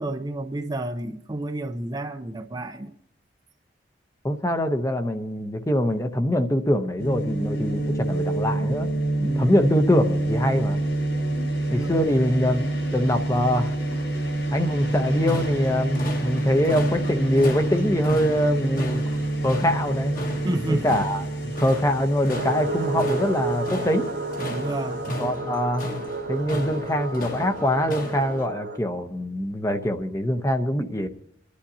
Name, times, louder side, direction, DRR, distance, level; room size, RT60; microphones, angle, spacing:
voice 1, 0.0-2.9 9.2-9.5 11.8-12.0 20.4-21.0 24.5-25.0, right 1 dB, 20° right, 0.6 m, -30 dB
voice 2, 4.2-8.9 9.4-10.8 11.7-13.7 14.5-19.0 19.4-20.1 20.7-24.1 25.2-25.8 26.3-31.1, left 1 dB, 15° left, 0.8 m, -23 dB
sound 1, 7.0-25.2, right 2 dB, 70° left, 7.9 m, -27 dB
sound 2, 14.8-28.5, left 1 dB, 50° left, 1.6 m, -35 dB
sound 3, 22.3-28.8, right 3 dB, 70° right, 1.5 m, -31 dB
28.5 x 11.5 x 2.7 m
head